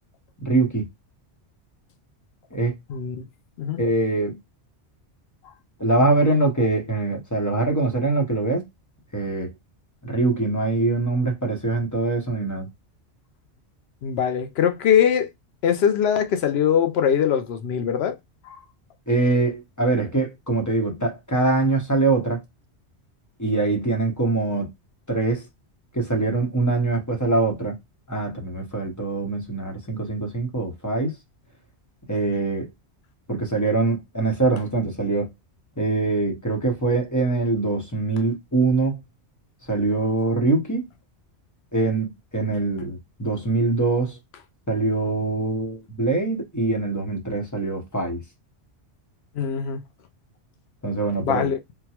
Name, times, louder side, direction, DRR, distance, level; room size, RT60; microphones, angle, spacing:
voice 1, 0.4-0.9 2.5-2.7 3.8-4.4 5.8-8.6 9.1-9.5 10.0-12.7 19.1-22.4 23.4-24.7 25.1-25.5 25.9-27.8 28.1-31.1 32.1-32.7 33.3-35.3 35.8-39.0 39.7-40.9 41.7-44.2 44.7-48.2 50.8-51.5, right 3 dB, 20° left, 0.8 m, -23 dB
voice 2, 2.9-3.2 3.6-3.8 14.0-15.3 15.6-18.2 18.5-18.6 49.4-49.8 51.2-51.6, left 8 dB, 70° left, 0.8 m, -22 dB
3.7 x 2.1 x 2.8 m
omnidirectional pair, 1.2 m